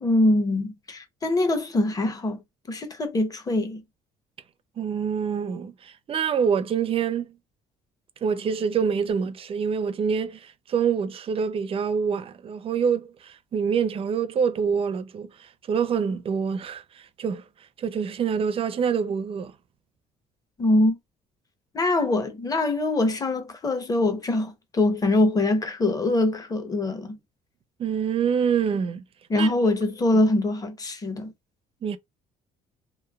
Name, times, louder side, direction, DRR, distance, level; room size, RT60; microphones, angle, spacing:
voice 1, 0.0-2.4 2.7-3.8 20.6-21.0 21.7-27.2 29.3-31.3, left 2 dB, 20° left, 0.7 m, -23 dB
voice 2, 4.8-7.3 8.2-17.5 17.8-19.5 27.8-29.0 29.3-29.5 31.8-32.0, right 6 dB, 35° right, 0.4 m, -26 dB
3.1 x 2.1 x 2.2 m
cardioid pair, 110°, 17 cm